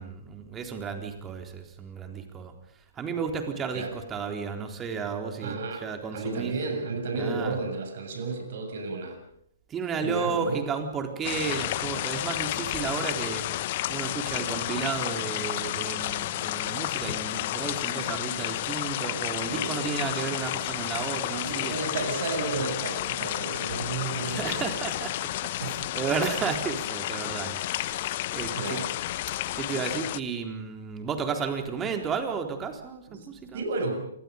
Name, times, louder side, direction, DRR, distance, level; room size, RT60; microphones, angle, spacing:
voice 1, 0.0-2.5 3.0-6.5 7.1-7.6 9.7-13.4 13.9-21.7 24.3-25.1 25.4-28.8 29.5-33.6, right 6 dB, 20° right, 5 dB, 3.9 m, -33 dB
voice 2, 5.4-5.9 6.1-9.2 10.0-10.7 19.1-19.2 19.5-20.0 21.5-24.7 25.6-25.8 26.4-26.5 28.5-29.0 33.1-33.3 33.5-34.1, right 3 dB, 55° right, 5 dB, 7.3 m, -32 dB
sound 1, 11.2-30.2, left 15 dB, 45° left, 0.8 m, -31 dB
27.5 x 24.5 x 5.4 m, 0.74 s
figure-of-eight pair, 120°, 0 cm